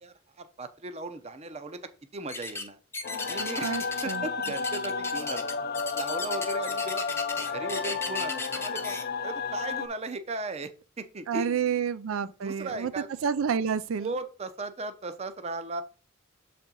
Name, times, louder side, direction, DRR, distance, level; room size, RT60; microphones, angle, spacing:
voice 1, 0.0-1.8 2.1-2.8 3.3-3.8 4.0-5.5 5.9-7.1 7.5-9.0 9.2-10.7 11.0-11.6 12.2-13.1 14.0-15.8, right 3 dB, 30° right, 0.6 m, -37 dB
sound 1, 2.3-2.7 2.9-4.2 4.4-9.0, left 3 dB, 15° left, 0.7 m, -35 dB
sound 2, 3.0-9.9, left 5 dB, 50° left, 0.5 m, -32 dB
voice 2, 3.6-4.2 11.3-12.9 13.2-14.1, right 7 dB, 85° right, 0.4 m, -29 dB
6.9 x 4.3 x 3.8 m
head